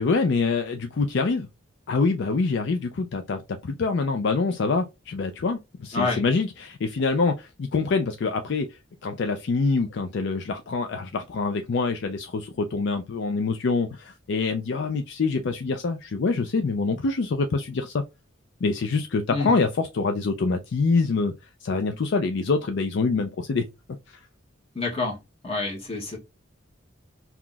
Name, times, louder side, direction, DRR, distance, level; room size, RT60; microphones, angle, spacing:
voice 1, 0.0-1.5 1.9-8.7 9.0-18.0 18.6-21.3 21.6-23.6, left 4 dB, 60° left, 0.4 m, -25 dB
voice 2, 24.7-25.2 25.4-26.2, left 3 dB, 30° left, 1.2 m, -27 dB
2.9 x 2.3 x 3.7 m
head